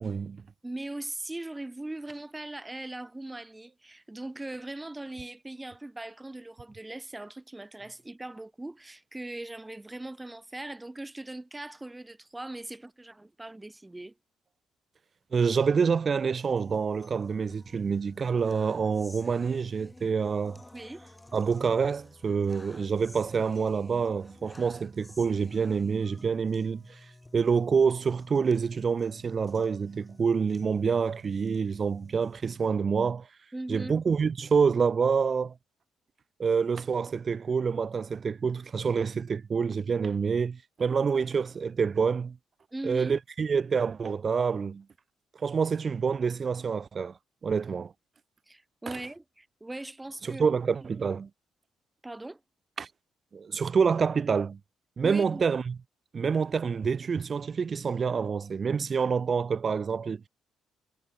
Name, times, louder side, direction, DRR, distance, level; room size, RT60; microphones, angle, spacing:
voice 1, 0.0-0.4 15.3-20.6 21.3-26.8 27.3-33.3 33.7-35.5 36.4-42.4 42.8-44.8 45.4-47.1 47.4-47.9 48.9-49.0 50.2-51.3 52.8-52.9 53.3-54.6 55.0-55.8 56.1-60.3, right 5 dB, 40° right, 0.5 m, -27 dB
voice 2, 0.6-14.1 20.7-21.0 33.5-33.9 42.7-43.2 48.5-50.5 50.8-50.9 52.0-52.4 55.0-55.4, right 2 dB, 15° right, 1.1 m, -40 dB
sound 1, 16.6-32.6, left 2 dB, 15° left, 2.9 m, -53 dB
cardioid pair, 90°, 0 cm